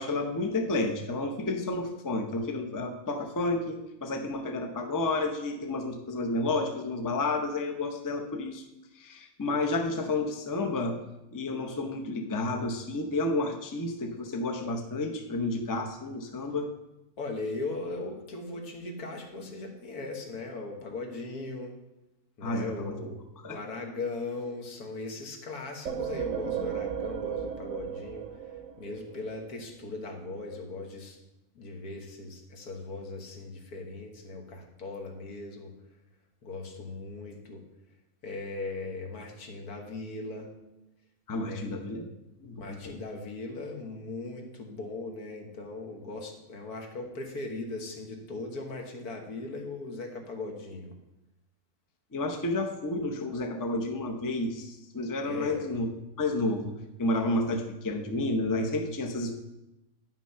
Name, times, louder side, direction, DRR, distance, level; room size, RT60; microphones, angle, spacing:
voice 1, 0.0-8.6 8.9-11.0 11.3-16.7 22.4-23.0 23.4-23.6 41.3-42.1 42.4-43.0 52.1-55.9 56.2-59.4, left 2 dB, 20° left, 4 dB, 0.5 m, -31 dB
voice 2, 17.2-21.7 22.4-23.2 23.5-28.3 28.8-31.2 31.6-35.7 36.4-37.6 38.2-40.5 41.4-41.7 42.6-50.9 55.2-55.6, left 3 dB, 80° left, 2 dB, 1.8 m, -38 dB
sound 1, 25.9-29.5, right 8 dB, 65° right, 1.0 m, -35 dB
9.5 x 6.0 x 5.6 m, 0.94 s
omnidirectional pair, 1.6 m